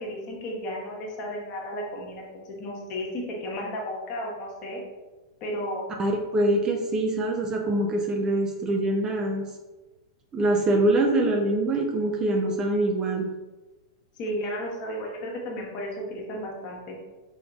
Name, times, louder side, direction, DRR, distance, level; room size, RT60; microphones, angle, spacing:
voice 1, 0.0-4.8 5.4-5.9 14.2-17.0, equal, 40° left, -2 dB, 1.1 m, -33 dB
voice 2, 6.0-9.5 10.3-13.3, right 1 dB, 25° right, 2 dB, 0.5 m, -24 dB
3.7 x 3.5 x 2.4 m, 1.2 s
hypercardioid pair, 110°, 3 cm